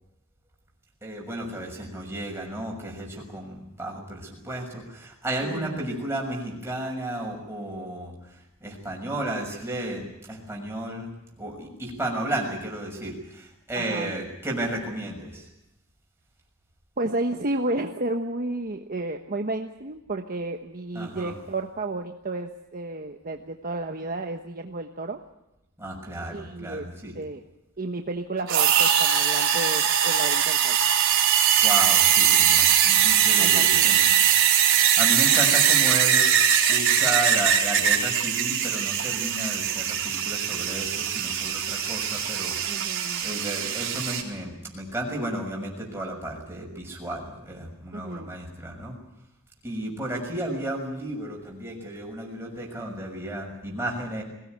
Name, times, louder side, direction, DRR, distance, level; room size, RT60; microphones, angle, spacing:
voice 1, 1.0-8.1 8.6-11.1 11.4-15.5 20.9-21.3 25.8-27.1 31.6-34.1 34.6-36.2 36.7-42.9 43.2-48.9 49.6-54.2, right 1 dB, 10° right, -1 dB, 6.6 m, -33 dB
voice 2, 5.4-5.9 13.7-14.1 17.0-25.2 26.3-27.4 27.8-30.8 33.4-33.9 42.7-43.2 47.9-48.3, right 2 dB, 40° right, 4 dB, 1.2 m, -32 dB
sound 1, 28.5-44.2, right 9 dB, 60° right, 4.1 m, -21 dB
22.0 x 17.5 x 9.5 m, 0.90 s
head